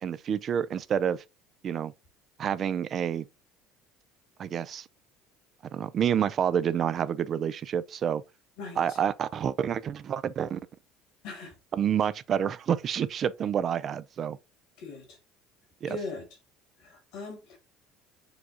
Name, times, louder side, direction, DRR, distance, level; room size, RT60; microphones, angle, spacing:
voice 1, 0.0-1.2 1.6-1.9 2.4-3.2 4.4-4.9 5.7-8.2 8.8-10.6 11.7-14.4 15.8-16.0, right 8 dB, 45° right, 0.3 m, -28 dB
voice 2, 8.6-9.0 11.2-11.6 14.8-15.2 15.9-16.3 16.8-17.6, left 3 dB, 75° left, 2.0 m, -40 dB
5.0 x 2.3 x 3.9 m
hypercardioid pair, 80°, 0 cm